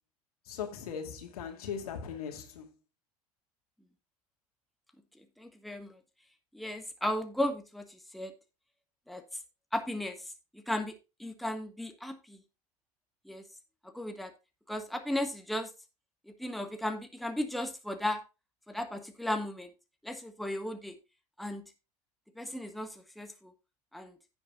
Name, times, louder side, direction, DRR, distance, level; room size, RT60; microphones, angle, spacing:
voice 1, 0.5-2.7, left 7 dB, 65° left, 2.3 m, -39 dB
voice 2, 5.4-6.0 6.5-8.3 9.1-9.2 9.7-10.2 10.5-10.9 11.2-12.4 13.2-13.4 13.9-14.3 14.7-15.7 16.4-18.2 18.7-19.7 20.0-20.9 21.4-21.7 22.4-23.5 23.9-24.2, left 1 dB, ahead, 1.5 m, -35 dB
16.0 x 7.0 x 2.5 m
figure-of-eight pair, 75°, 20 cm